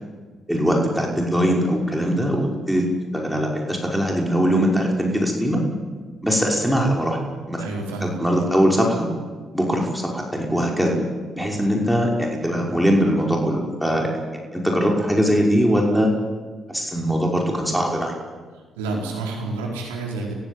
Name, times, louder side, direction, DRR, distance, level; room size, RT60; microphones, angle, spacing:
voice 1, 0.5-2.8 3.1-5.6 6.2-7.2 7.5-7.6 8.0-9.1 9.5-11.0 11.3-16.1 16.7-18.1, equal, ahead, -1 dB, 5.7 m, -21 dB
voice 2, 7.6-8.2 11.4-11.7 18.8-20.3, right 2 dB, 85° right, -1 dB, 4.5 m, -29 dB
27.5 x 15.0 x 9.1 m, 1.4 s
hypercardioid pair, 45°, 0 cm